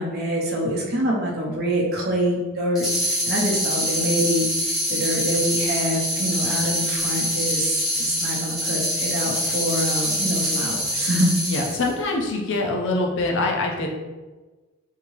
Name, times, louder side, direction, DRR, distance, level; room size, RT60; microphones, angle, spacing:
voice 1, 0.0-11.3, equal, 45° right, -2 dB, 0.7 m, -25 dB
sound 1, 2.7-11.9, equal, ahead, 0.7 m, -25 dB
voice 2, 11.5-13.9, left 2 dB, 60° left, 1 dB, 0.6 m, -24 dB
3.6 x 2.8 x 3.1 m, 1.2 s
head